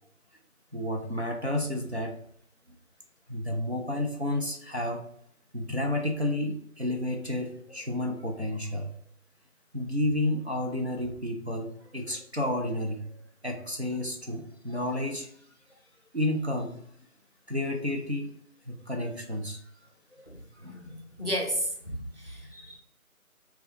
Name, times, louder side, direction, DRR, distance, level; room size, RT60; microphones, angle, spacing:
voice 1, 0.7-2.2 3.3-5.1 5.5-8.9 9.7-15.3 16.1-16.8 17.5-18.3 18.7-19.6 20.2-20.3 20.6-21.0, left 1 dB, 50° right, 0 dB, 0.6 m, -31 dB
voice 2, 20.8-22.8, equal, 40° left, 0 dB, 0.6 m, -33 dB
3.9 x 2.3 x 3.5 m, 0.66 s
figure-of-eight pair, 170°, 44 cm